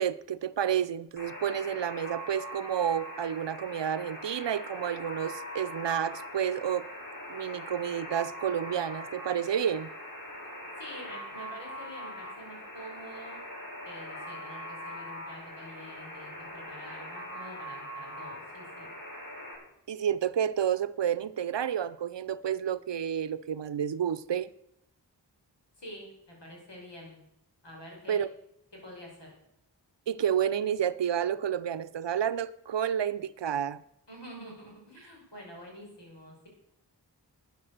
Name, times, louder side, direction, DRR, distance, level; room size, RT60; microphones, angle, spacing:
voice 1, 0.0-6.9 7.3-9.9 19.9-24.5 28.1-28.3 30.1-33.8, right 9 dB, 80° right, 0.6 m, -30 dB
Alarm, 1.2-19.5, equal, 50° left, 6.2 m, -42 dB
voice 2, 10.8-13.4 13.9-18.9 25.8-27.2 27.6-28.2 28.7-29.3 34.1-36.5, equal, 80° left, 5.7 m, -47 dB
12.0 x 9.7 x 6.6 m
wide cardioid pair, 60°, 42 cm